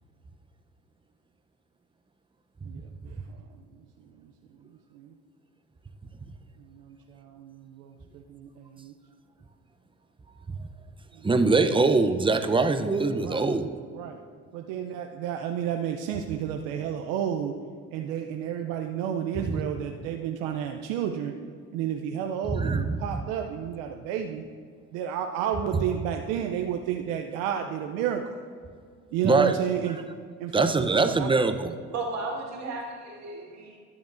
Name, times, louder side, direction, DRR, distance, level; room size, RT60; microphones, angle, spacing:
voice 1, 2.6-3.4 4.9-5.1 6.6-8.9 13.2-13.4 13.9-14.2 14.5-17.5 17.9-21.3 21.7-24.4 24.9-28.4 29.1-30.0 30.4-31.3, right 9 dB, 85° right, 4 dB, 0.5 m, -31 dB
voice 2, 11.2-13.7 22.5-22.8 23.1-23.2 29.2-29.6 30.5-31.8, right 3 dB, 15° right, 8 dB, 0.6 m, -23 dB
voice 3, 31.9-33.8, right 3 dB, 60° right, -1 dB, 2.1 m, -34 dB
12.5 x 7.0 x 2.5 m, 2.1 s
supercardioid pair, 65°, 32 cm